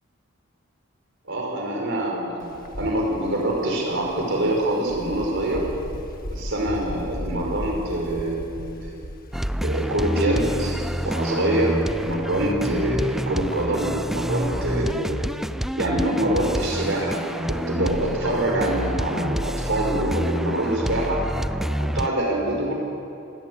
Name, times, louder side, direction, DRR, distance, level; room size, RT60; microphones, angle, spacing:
voice 1, 1.3-5.7 6.3-9.1 9.6-10.8 11.0-15.2 15.8-21.2 21.8-22.7, right 1 dB, 65° right, 0 dB, 5.3 m, -25 dB
Wind, 2.4-15.5, left 1 dB, 45° left, 1.6 m, -38 dB
sound 1, 9.3-22.1, equal, ahead, 0.4 m, -28 dB
26.5 x 14.5 x 9.6 m, 2.8 s
head